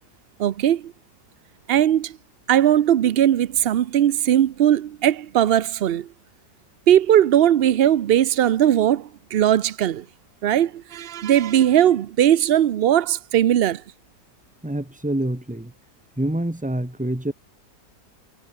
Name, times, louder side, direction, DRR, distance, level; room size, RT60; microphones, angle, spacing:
voice 1, 0.4-0.9 1.7-2.1 2.5-6.1 6.9-10.0 10.4-13.8, right 11 dB, 80° right, 0.5 m, -19 dB
voice 2, 14.6-15.7 16.2-17.3, right 1 dB, 5° right, 2.3 m, -26 dB
omnidirectional pair, 1.8 m